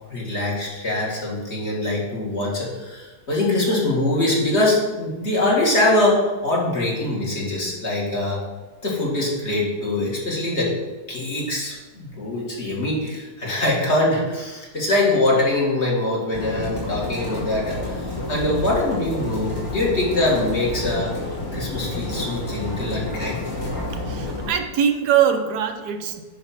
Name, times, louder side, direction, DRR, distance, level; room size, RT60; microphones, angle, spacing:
voice 1, 0.1-8.4 8.8-10.7 11.1-17.8 18.3-21.1 21.5-23.4, left 2 dB, 45° left, -5 dB, 2.0 m, -23 dB
sound 1, 16.3-24.5, left 2 dB, 60° left, 2.9 m, -29 dB
voice 2, 24.0-26.2, right 8 dB, 85° right, 6 dB, 1.3 m, -22 dB
9.8 x 3.5 x 5.8 m, 1.2 s
omnidirectional pair, 1.7 m